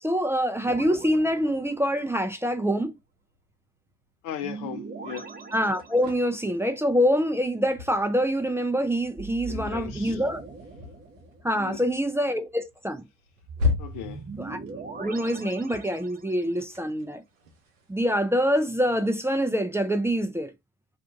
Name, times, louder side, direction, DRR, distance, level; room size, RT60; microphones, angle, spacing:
voice 1, 0.0-3.0 5.5-10.4 11.4-13.0 14.4-14.6 15.0-17.2 17.9-20.5, equal, 5° right, 0.6 m, -25 dB
sound 1, 0.7-2.2 4.4-6.5 9.2-11.7 13.5-16.5, right 5 dB, 25° right, 1.0 m, -41 dB
sound 2, 2.9-19.3, left 4 dB, 85° right, 0.7 m, -38 dB
voice 2, 4.2-5.3 9.5-10.2 11.5-11.9 13.8-14.3, left 9 dB, 60° left, 0.7 m, -37 dB
2.6 x 2.5 x 3.6 m
figure-of-eight pair, 50°, 38 cm